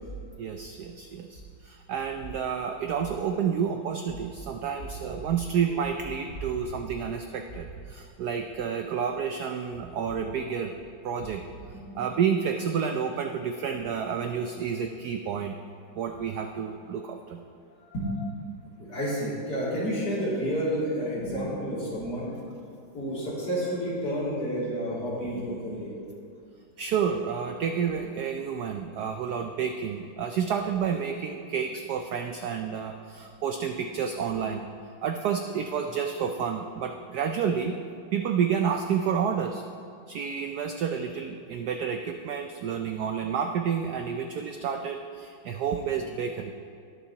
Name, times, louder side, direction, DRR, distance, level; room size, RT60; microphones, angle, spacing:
voice 1, 0.4-10.7 11.0-11.4 11.9-15.6 16.0-17.4 26.8-34.6 35.0-37.8 38.1-39.6 40.1-46.5, right 7 dB, 85° right, 5 dB, 0.8 m, -30 dB
voice 2, 18.8-22.4 22.9-26.0, equal, 50° left, -8 dB, 3.3 m, -30 dB
19.5 x 7.0 x 2.9 m, 2.4 s
omnidirectional pair, 2.3 m